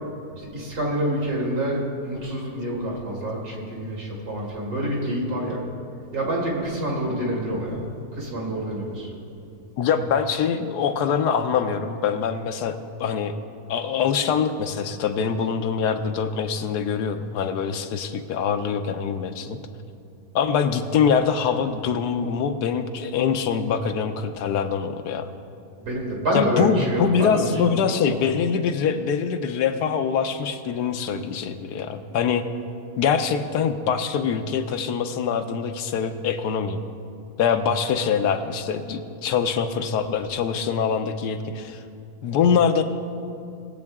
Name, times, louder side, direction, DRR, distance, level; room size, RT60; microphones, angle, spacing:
voice 1, 0.4-5.6 6.1-7.8 8.1-9.1 25.8-28.0 37.8-38.0, right 1 dB, 80° right, -3 dB, 2.9 m, -27 dB
voice 2, 9.8-13.4 13.7-19.6 20.3-25.3 26.3-32.5 33.0-36.8 37.4-41.8 42.2-42.8, left 6 dB, 90° left, 8 dB, 1.3 m, -24 dB
19.5 x 7.7 x 3.6 m, 2.5 s
omnidirectional pair, 1.7 m